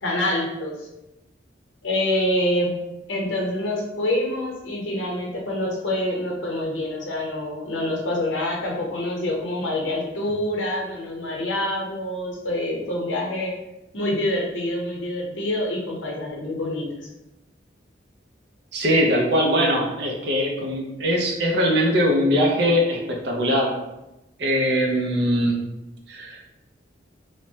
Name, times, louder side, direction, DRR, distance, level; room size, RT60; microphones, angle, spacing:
voice 1, 0.0-0.9 1.8-2.8 3.1-13.5 13.9-17.1, left 1 dB, 90° left, -2 dB, 0.7 m, -26 dB
voice 2, 18.7-23.7 24.4-25.6 26.1-26.4, equal, 60° right, 0 dB, 0.5 m, -21 dB
3.1 x 2.0 x 2.7 m, 0.95 s
head